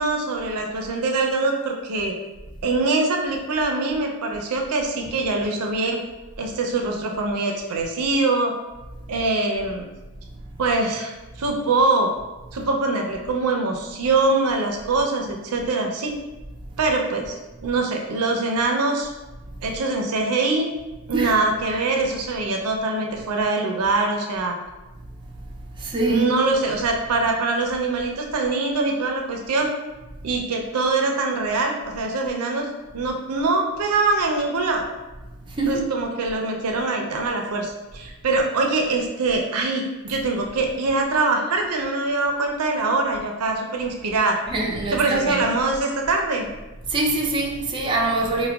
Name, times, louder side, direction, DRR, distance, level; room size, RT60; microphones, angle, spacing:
voice 1, 0.0-2.2 2.6-6.0 6.4-8.5 9.1-9.8 10.6-11.1 11.4-12.1 12.5-16.1 16.8-19.1 19.6-20.7 21.1-24.5 26.1-29.7 30.2-32.7 32.9-34.8 35.7-44.4 44.9-46.5, right 3 dB, 80° right, 2 dB, 0.5 m, -23 dB
voice 2, 25.7-26.3 35.5-35.8 44.5-45.4 46.9-48.5, right 2 dB, 20° right, -1 dB, 0.4 m, -24 dB
4.6 x 2.1 x 2.2 m, 1.1 s
head